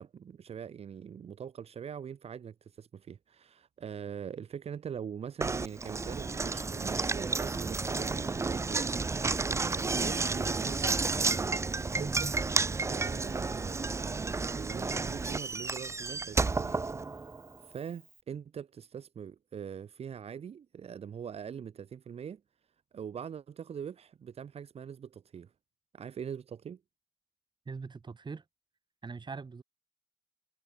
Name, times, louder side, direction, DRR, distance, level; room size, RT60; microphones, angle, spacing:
voice 1, 0.0-10.9 11.9-12.6 12.9-16.8 17.1-17.2 17.6-22.4 22.9-25.5 25.9-26.8, right 7 dB, 75° right, 2.4 m, -43 dB
Knock, 5.4-17.6, right 4 dB, 25° right, 0.5 m, -31 dB
voice 2, 27.7-28.4 29.0-29.6, right 4 dB, 45° right, 5.5 m, -41 dB
cardioid pair, 75°, 11 cm